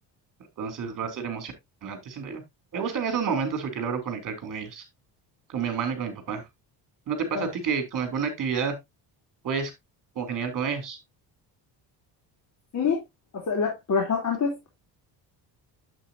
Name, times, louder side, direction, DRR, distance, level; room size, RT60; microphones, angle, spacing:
voice 1, 0.6-1.5 1.8-2.4 2.7-4.8 5.5-6.4 7.1-8.7 9.4-9.7 10.1-11.0, right 6 dB, 50° right, 3.6 m, -29 dB
voice 2, 13.3-14.7, left 5 dB, 40° left, 3.0 m, -26 dB
8.9 x 7.9 x 2.6 m
cardioid pair, 100°, 42 cm